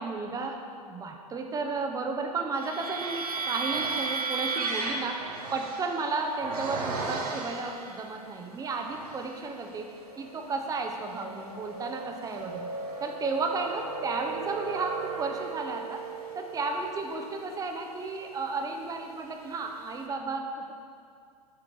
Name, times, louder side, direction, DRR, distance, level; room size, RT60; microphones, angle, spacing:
voice 1, 0.0-12.7 13.0-16.0 16.3-20.7, right 3 dB, 20° right, 3 dB, 0.7 m, -33 dB
sound 1, 2.5-8.0 8.6-9.4 9.9-19.1, right 4 dB, 75° right, 0.9 m, -36 dB
7.8 x 3.7 x 4.6 m, 2.3 s
hypercardioid pair, 105°, 20 cm